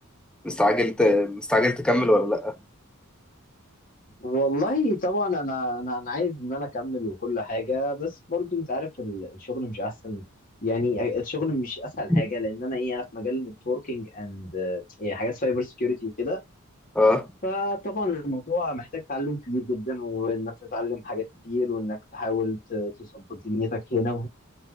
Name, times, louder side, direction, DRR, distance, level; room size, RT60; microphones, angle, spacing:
voice 1, 0.4-2.6 12.1-12.2 17.0-17.3, left 1 dB, 5° left, 0.4 m, -21 dB
voice 2, 4.2-10.2 10.6-16.4 17.4-24.3, left 2 dB, 40° left, 1.3 m, -29 dB
2.6 x 2.4 x 3.7 m
head